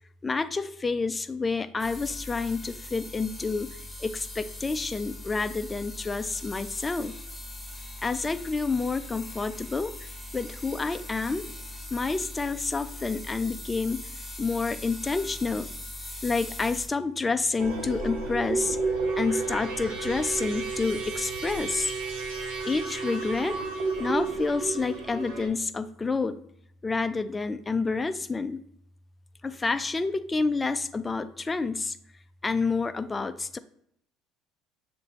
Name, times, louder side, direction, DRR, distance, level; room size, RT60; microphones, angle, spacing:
voice 1, 0.2-7.1 8.0-9.9 10.3-11.5 11.9-14.0 14.4-15.7 16.2-18.8 19.2-21.9 22.7-23.6 24.0-26.4 26.8-28.6 29.4-32.0 32.4-33.6, left 4 dB, 20° left, 11 dB, 0.3 m, -29 dB
sound 1, 1.8-16.9, left 1 dB, 5° left, 1.2 m, -41 dB
sound 2, 17.6-25.5, right 3 dB, 85° right, 1.1 m, -31 dB
6.7 x 2.5 x 3.0 m, 0.70 s
supercardioid pair, 85°, 0 cm